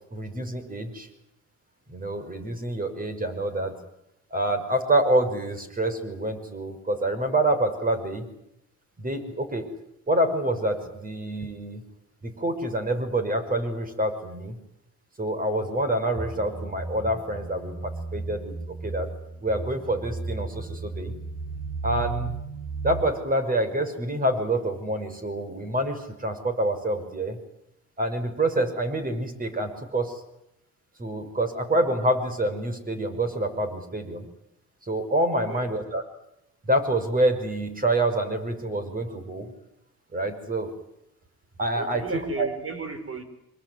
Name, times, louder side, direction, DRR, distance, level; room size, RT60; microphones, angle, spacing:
voice 1, 0.1-1.1 1.9-3.8 4.3-8.3 9.0-9.7 10.1-11.8 12.2-14.6 15.2-19.1 19.4-21.1 21.8-22.4 22.8-27.4 28.0-30.2 31.0-34.3 34.8-36.0 36.7-39.5 40.1-40.7 41.6-42.0 42.4-42.5, right 1 dB, 30° right, 8 dB, 6.2 m, -27 dB
sound 1, 16.2-23.0, right 3 dB, 75° right, 6.3 m, -35 dB
voice 2, 35.3-35.7 41.8-43.2, right 3 dB, 50° right, 9 dB, 5.5 m, -35 dB
26.0 x 23.0 x 9.7 m, 0.80 s
cardioid pair, 90°, 30 cm